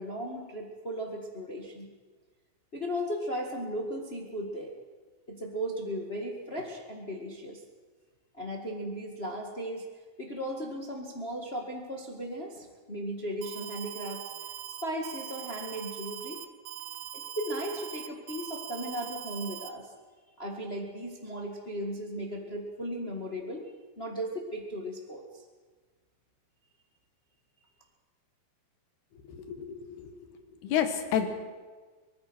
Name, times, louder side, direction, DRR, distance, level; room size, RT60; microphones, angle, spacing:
voice 1, 0.0-1.9 2.7-4.7 5.3-7.6 8.3-9.9 10.2-14.5 14.8-16.4 17.1-19.9 20.4-25.4, equal, 50° left, 1 dB, 0.7 m, -36 dB
Alarm, 13.4-19.7, right 11 dB, 70° right, 2.5 m, -41 dB
voice 2, 29.3-30.1 30.6-31.3, left 9 dB, 80° left, 7 dB, 3.7 m, -30 dB
24.0 x 19.5 x 6.2 m, 1.4 s
omnidirectional pair, 4.6 m